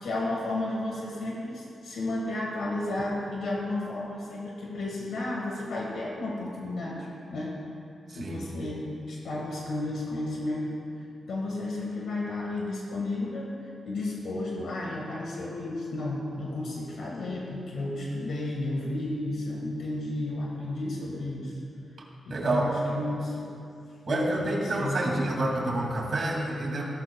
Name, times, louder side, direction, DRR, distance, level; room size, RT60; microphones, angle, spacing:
voice 1, 0.0-7.6 8.1-10.8 11.3-13.5 13.8-21.5 22.2-23.4 24.0-25.4, left 2 dB, 85° left, -3 dB, 1.6 m, -32 dB
voice 2, 8.1-8.4 22.3-22.6 24.0-26.8, right 2 dB, 45° right, -2 dB, 2.3 m, -28 dB
16.5 x 12.0 x 2.3 m, 2.6 s
wide cardioid pair, 145°, 0 cm